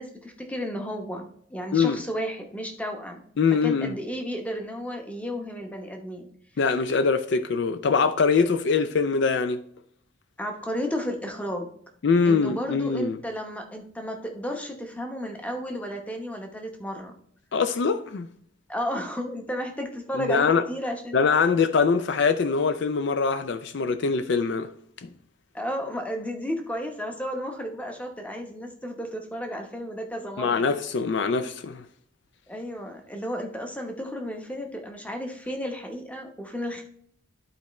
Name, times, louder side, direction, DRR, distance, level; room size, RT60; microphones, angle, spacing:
voice 1, 0.0-3.2 3.6-6.3 10.4-11.7 12.3-17.1 18.7-21.2 25.5-30.7 32.5-36.8, equal, 5° left, 0.9 m, -33 dB
voice 2, 3.4-3.9 6.6-9.6 12.0-13.2 17.5-18.3 20.1-20.6 21.1-24.7 25.0-25.1 30.4-31.8, left 5 dB, 55° left, 0.4 m, -23 dB
11.5 x 4.3 x 3.1 m
head